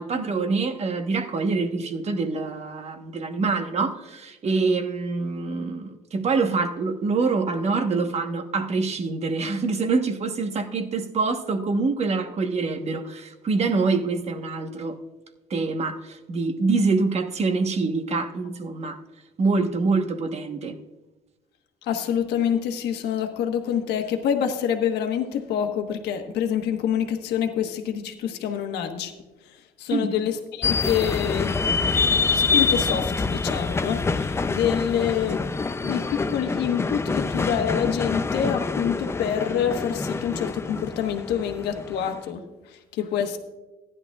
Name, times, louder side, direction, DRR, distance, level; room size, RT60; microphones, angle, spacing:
voice 1, 0.0-15.0 15.5-19.0 19.4-20.8 29.9-30.1, right 4 dB, 40° right, 7 dB, 1.1 m, -25 dB
voice 2, 21.8-29.1 29.4-31.6 32.3-35.4 35.8-43.4, left 9 dB, 80° left, 6 dB, 1.3 m, -27 dB
sound 1, 30.6-42.2, left 4 dB, 15° left, 0.4 m, -26 dB
15.0 x 11.0 x 2.4 m, 1.1 s
cardioid pair, 110°, 17 cm